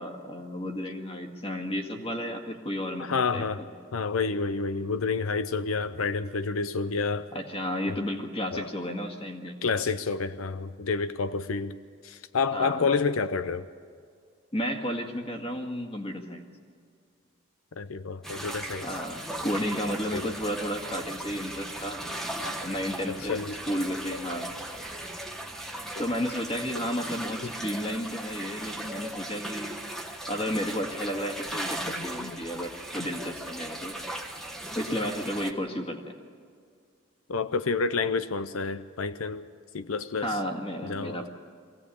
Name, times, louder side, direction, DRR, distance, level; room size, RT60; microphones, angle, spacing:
voice 1, 0.0-3.7 7.3-9.6 12.5-12.9 14.5-16.5 18.8-22.0 22.6-23.4 23.7-24.5 26.0-29.8 30.3-33.9 34.7-36.2 40.2-41.3, equal, 25° left, 3 dB, 1.9 m, -32 dB
voice 2, 3.0-3.6 3.9-7.3 7.9-8.0 8.5-8.7 9.6-11.8 12.0-13.7 17.8-18.9 20.1-20.3 22.4-22.6 23.1-23.6 24.1-24.2 27.4-27.5 31.9-32.5 37.3-39.5 39.7-40.4 40.8-41.3, left 4 dB, 90° left, 12 dB, 0.7 m, -29 dB
sound 1, 18.2-35.5, right 1 dB, ahead, 1.2 m, -37 dB
23.5 x 16.5 x 8.5 m, 2.2 s
head